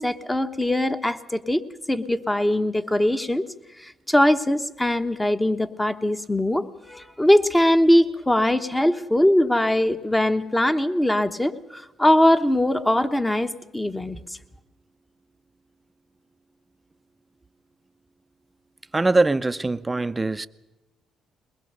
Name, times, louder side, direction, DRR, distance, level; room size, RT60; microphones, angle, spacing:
voice 1, 0.0-3.4 3.8-14.2, left 1 dB, 10° left, 1.1 m, -21 dB
voice 2, 18.9-20.5, right 3 dB, 20° right, 0.7 m, -22 dB
22.0 x 20.5 x 6.7 m
cardioid pair, 90°, 0 cm